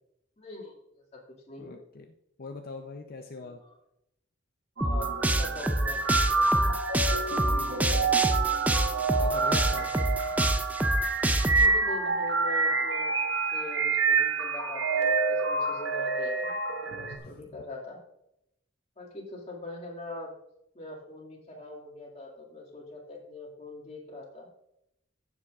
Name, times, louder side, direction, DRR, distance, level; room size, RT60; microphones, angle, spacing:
voice 1, 0.4-1.2 1.5-1.8 3.4-3.7 4.8-6.7 9.7-10.3 11.6-13.2 13.5-16.5 16.8-18.0 19.0-20.3 20.7-24.5, left 2 dB, 35° left, -2 dB, 2.2 m, -43 dB
voice 2, 1.6-2.1 2.4-3.6 7.3-8.2 9.2-10.2 17.2-17.4, left 3 dB, 50° left, 5 dB, 0.6 m, -41 dB
sound 1, 4.8-11.7, right 1 dB, 10° right, 0.5 m, -27 dB
sound 2, 4.8-17.2, right 4 dB, 75° right, 1.0 m, -27 dB
15.5 x 7.2 x 2.5 m, 0.80 s
head